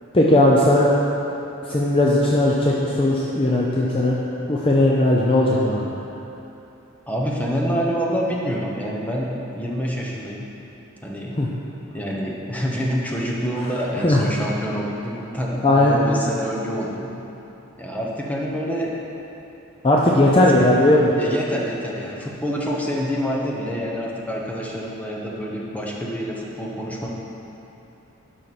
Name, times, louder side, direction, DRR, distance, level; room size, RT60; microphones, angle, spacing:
voice 1, 0.1-0.9 1.7-4.2 4.5-6.0 11.4-11.5 14.0-14.2 15.6-16.0 19.8-21.2, left 1 dB, 25° left, -4 dB, 0.6 m, -17 dB
voice 2, 7.1-10.5 11.0-11.4 11.9-17.1 17.8-18.9 20.1-20.6 21.2-27.1, equal, 5° left, -3 dB, 1.0 m, -27 dB
11.5 x 5.9 x 4.2 m, 3.0 s
head